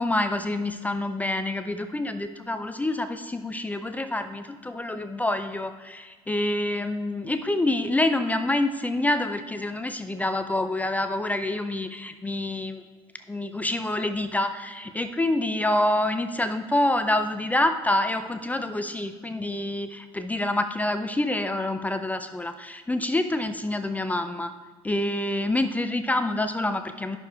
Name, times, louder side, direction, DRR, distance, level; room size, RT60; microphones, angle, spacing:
voice 1, 0.0-12.8 13.3-24.5 24.8-27.2, left 1 dB, 10° left, 8 dB, 0.5 m, -27 dB
10.5 x 6.7 x 3.5 m, 1.5 s
supercardioid pair, 85°, 13 cm